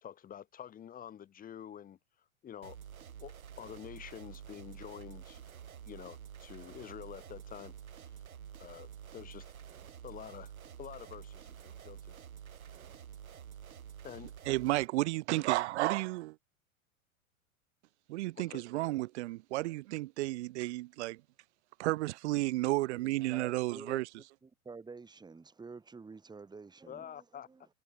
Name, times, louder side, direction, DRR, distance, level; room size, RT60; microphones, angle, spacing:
voice 1, 0.0-2.0 2.4-2.8 3.2-5.4 5.9-8.1 8.6-9.5 10.0-10.5 10.8-12.2 14.0-14.3 15.3-15.4 18.4-18.6 26.9-27.5, left 9 dB, 20° left, 1.2 m, -48 dB
sound 1, 2.6-14.9, right 8 dB, 75° right, 2.5 m, -49 dB
voice 2, 14.5-16.3 18.1-21.2 21.8-24.0, right 19 dB, 55° right, 0.8 m, -32 dB
voice 3, 23.0-24.0 24.4-27.7, right 4 dB, 10° right, 1.8 m, -49 dB
figure-of-eight pair, 100°, 42 cm